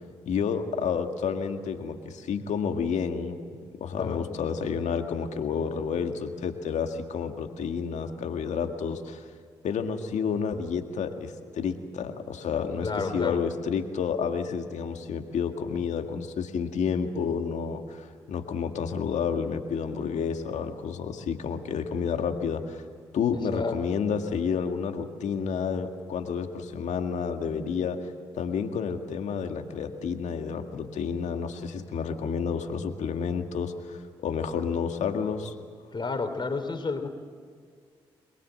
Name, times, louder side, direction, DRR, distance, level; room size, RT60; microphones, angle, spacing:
voice 1, 0.3-3.4 3.8-9.2 9.6-22.8 23.1-28.0 28.4-35.6, left 6 dB, 70° left, 5 dB, 2.0 m, -30 dB
voice 2, 12.8-13.4 23.5-24.0 35.9-37.1, left 4 dB, 40° left, 7 dB, 3.3 m, -31 dB
23.5 x 21.5 x 7.7 m, 2.1 s
hypercardioid pair, 45°, 12 cm